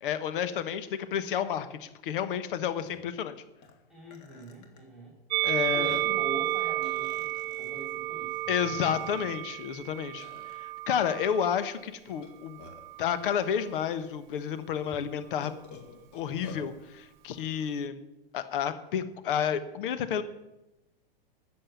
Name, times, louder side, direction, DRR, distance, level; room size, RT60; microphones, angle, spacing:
voice 1, 0.0-3.3 5.4-6.0 8.5-12.6 13.0-15.5 16.1-18.0 18.3-20.2, left 8 dB, 60° left, 12 dB, 1.3 m, -31 dB
Burping eructation, 2.3-2.4 2.8-3.0 3.6-3.7 4.1-4.8 5.4-5.5 5.8-6.2 6.8-7.8 8.5-8.6 8.9-9.5 10.2-10.5 12.1-13.0 13.8-13.9 14.3-14.4 15.4-16.7, left 4 dB, 35° left, 2.4 m, -49 dB
voice 2, 3.9-5.1 5.7-9.4, right 1 dB, ahead, -1 dB, 2.8 m, -43 dB
Musical instrument, 5.3-11.7 12.5-13.5, right 17 dB, 50° right, 0.6 m, -32 dB
10.0 x 7.7 x 9.2 m, 0.94 s
hypercardioid pair, 125°, 30 cm